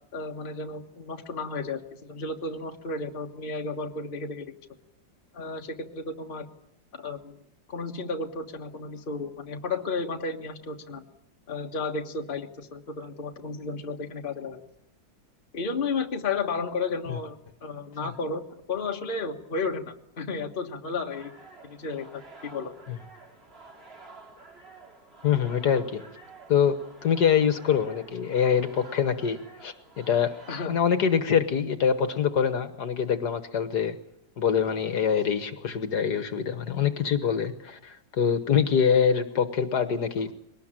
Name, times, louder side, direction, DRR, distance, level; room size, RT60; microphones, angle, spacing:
voice 1, 0.1-4.5 5.3-6.5 6.9-7.4 7.7-11.0 11.5-14.6 15.5-18.4 18.7-21.3 21.6-22.7 30.5-30.8, left 4 dB, 30° left, 3 dB, 1.5 m, -33 dB
sound 1, 21.1-31.6, right 3 dB, 30° right, 2.9 m, -50 dB
voice 2, 25.2-26.0 26.5-26.8 27.0-30.3 30.7-34.0 34.4-40.3, left 7 dB, 60° left, 10 dB, 1.7 m, -24 dB
22.5 x 19.0 x 9.0 m, 0.77 s
omnidirectional pair, 2.0 m